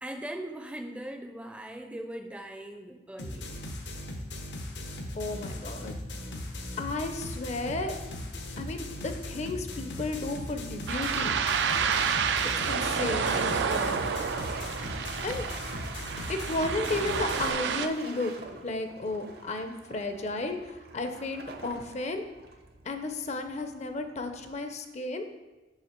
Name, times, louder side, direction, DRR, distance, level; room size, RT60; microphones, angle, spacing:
voice 1, 0.0-3.6, right 1 dB, 5° right, 5 dB, 0.5 m, -40 dB
sound 1, 3.2-17.5, left 1 dB, 80° left, 0.9 m, -38 dB
voice 2, 5.1-6.0 6.8-7.9 8.6-11.4 12.7-14.0 15.2-15.5 16.3-22.3 22.8-25.3, left 2 dB, 40° left, 7 dB, 0.6 m, -33 dB
sound 2, 10.9-17.9, right 6 dB, 85° right, 0.4 m, -29 dB
Toilet flush, 11.5-24.7, right 3 dB, 60° right, 0.8 m, -45 dB
6.5 x 5.6 x 4.4 m, 1.2 s
head